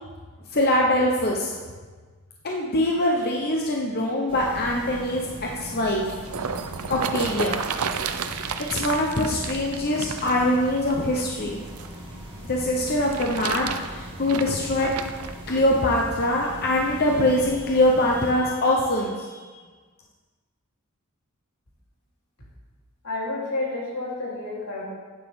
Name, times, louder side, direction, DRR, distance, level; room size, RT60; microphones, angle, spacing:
voice 1, 0.5-1.5 2.4-5.2 5.5-6.0 6.9-7.6 8.1-11.6 12.4-14.9 15.5-19.3, left 1 dB, 45° left, -1 dB, 1.0 m, -23 dB
sound 1, 4.3-18.3, equal, 25° right, 2.3 m, -40 dB
sound 2, 5.9-12.0 12.8-15.3 16.0-16.1, right 6 dB, 75° right, 0.6 m, -32 dB
voice 2, 23.0-24.8, left 2 dB, 85° left, -5 dB, 3.6 m, -30 dB
11.5 x 9.2 x 3.7 m, 1.4 s
head